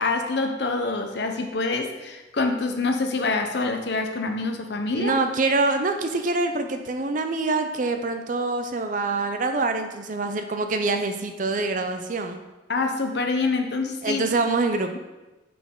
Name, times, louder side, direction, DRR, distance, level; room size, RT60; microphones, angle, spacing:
voice 1, 0.0-5.1 12.7-14.2, left 3 dB, 60° left, 5 dB, 0.7 m, -26 dB
voice 2, 4.9-12.4 14.0-15.0, right 3 dB, 40° right, 6 dB, 0.5 m, -25 dB
6.1 x 5.9 x 3.7 m, 1.1 s
head